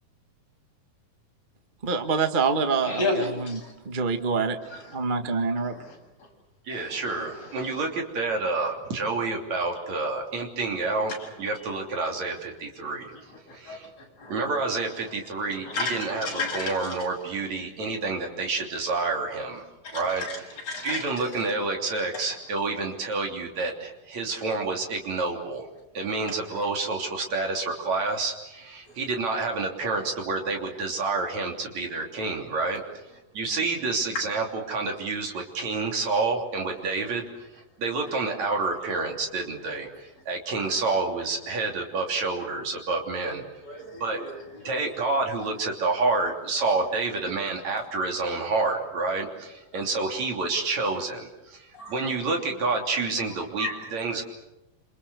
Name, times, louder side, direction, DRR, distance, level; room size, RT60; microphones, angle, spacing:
voice 1, 1.8-3.6 3.8-4.6 4.9-5.7, right 4 dB, 70° right, 6 dB, 0.4 m, -26 dB
voice 2, 2.8-3.7 4.7-4.9 5.6-6.0 6.7-7.8 11.2-11.3 13.5-13.8 15.7-17.0 19.9-21.4 22.1-22.2 28.9-29.0 39.8-39.9 40.6-40.7 43.6-44.8 46.6-46.8 51.7-51.9 53.6-54.0, left 2 dB, 45° left, -1 dB, 8.3 m, -34 dB
voice 3, 6.7-11.1 11.4-13.1 13.5-13.8 14.3-16.3 16.5-19.6 19.9-20.2 20.8-25.7 25.9-32.8 33.3-37.3 37.8-43.4 44.0-44.2 44.6-54.2, right 3 dB, 50° right, 2 dB, 4.3 m, -28 dB
27.5 x 27.5 x 6.8 m, 0.95 s
omnidirectional pair, 4.2 m